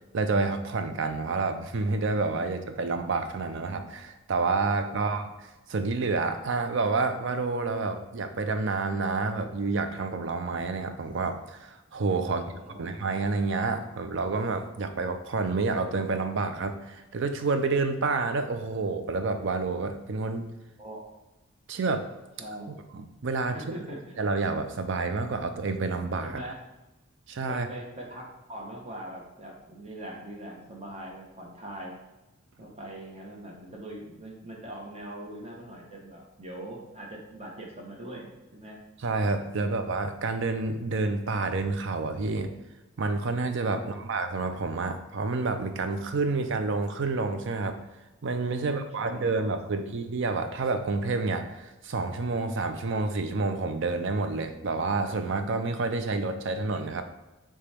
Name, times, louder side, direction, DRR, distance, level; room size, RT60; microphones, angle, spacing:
voice 1, 0.1-12.4 12.8-20.4 21.7-22.1 22.9-23.6 24.2-26.4 27.3-27.7 39.0-42.5 43.0-47.8 48.2-57.0, right 3 dB, 60° right, 8 dB, 0.5 m, -29 dB
voice 2, 12.3-12.9 20.8-21.0 22.4-22.7 23.5-24.1 26.2-26.6 27.5-32.0 32.6-38.8 43.7-44.0 48.6-49.3 49.7-50.0, right 1 dB, 30° right, -1 dB, 0.9 m, -42 dB
6.8 x 2.3 x 3.4 m, 1.0 s
head